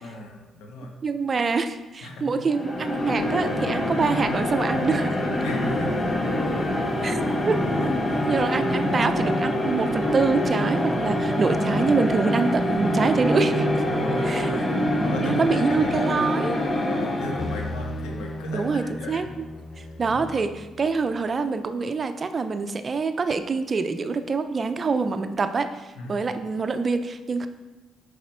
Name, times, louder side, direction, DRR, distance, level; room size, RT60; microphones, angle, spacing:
voice 1, 0.0-0.9 2.0-2.3 5.4-6.1 7.0-7.2 7.8-8.3 13.8-14.6 15.0-16.6 16.9-19.3 19.7-20.3 26.0-26.2, left 1 dB, 90° left, 1 dB, 1.2 m, -36 dB
voice 2, 1.0-5.2 7.0-7.2 7.5-7.6 8.2-13.7 14.2-14.5 15.2-16.6 18.5-19.4 19.8-27.5, right 4 dB, 40° right, 9 dB, 0.5 m, -25 dB
sound 1, 2.4-17.8, left 1 dB, 30° left, 1.2 m, -25 dB
sound 2, 5.4-15.4 17.6-20.2, right 3 dB, ahead, 1.9 m, -35 dB
sound 3, 17.4-21.1, left 1 dB, 45° left, 0.6 m, -36 dB
6.5 x 4.9 x 4.4 m, 1.1 s
cardioid pair, 90°, 0 cm